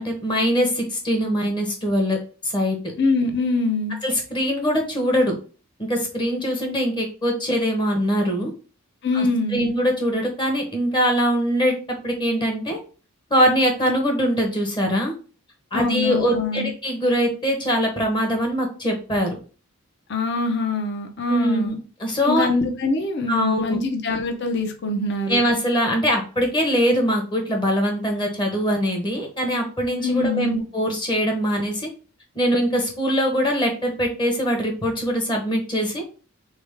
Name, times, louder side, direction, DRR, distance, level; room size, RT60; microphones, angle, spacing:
voice 1, 0.0-2.2 2.4-2.8 4.0-5.3 5.9-8.5 9.1-9.3 9.5-11.7 12.0-12.8 13.3-15.1 15.7-19.4 21.3-22.5 23.3-23.8 25.3-31.9 32.4-36.2, equal, 20° left, 2 dB, 0.9 m, -22 dB
voice 2, 3.0-4.0 9.0-9.7 15.7-16.7 20.1-21.8 22.2-25.4 30.0-30.6, left 3 dB, 50° left, 4 dB, 0.7 m, -24 dB
3.5 x 3.4 x 3.4 m, 0.37 s
head